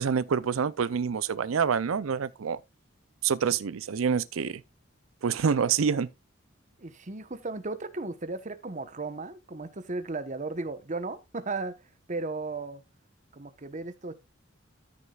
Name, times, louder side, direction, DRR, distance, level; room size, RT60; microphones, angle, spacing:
voice 1, 0.0-2.6 3.2-4.6 5.2-6.1, right 6 dB, 85° right, 0.5 m, -27 dB
voice 2, 6.8-11.8 12.1-12.8 13.3-14.1, right 3 dB, 40° right, 1.0 m, -35 dB
13.5 x 6.5 x 2.4 m
head